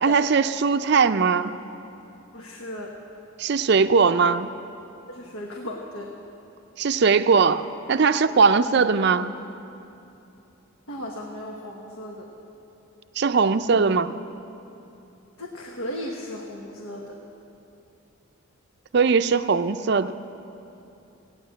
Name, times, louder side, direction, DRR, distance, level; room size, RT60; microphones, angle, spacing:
voice 1, 0.0-1.5 3.4-4.5 6.8-7.6 7.9-9.3 13.2-14.1 18.9-20.1, right 5 dB, 50° right, 11 dB, 0.4 m, -20 dB
voice 2, 2.3-3.0 5.1-6.1 10.9-12.3 15.4-17.2, left 1 dB, 75° left, 0 dB, 1.1 m, -36 dB
16.0 x 9.6 x 7.6 m, 2.8 s
head